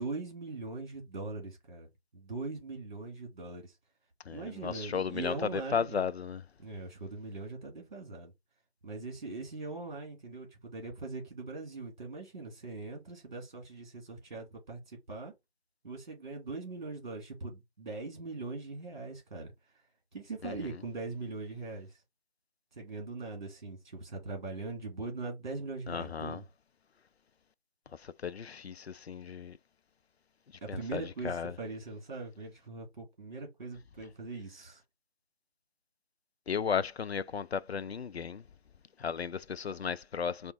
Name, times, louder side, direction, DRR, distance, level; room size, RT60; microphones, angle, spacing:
voice 1, 0.0-1.9 2.1-3.7 4.3-6.0 6.6-8.3 8.8-15.3 15.8-19.5 20.1-21.9 22.8-26.4 30.6-34.8, right 3 dB, 45° right, 2.1 m, -41 dB
voice 2, 4.2-6.5 20.4-20.8 25.9-26.4 27.9-29.6 30.7-31.6 36.5-38.4 39.0-40.5, left 6 dB, 75° left, 0.5 m, -35 dB
5.0 x 2.5 x 3.4 m
figure-of-eight pair, 150°, 32 cm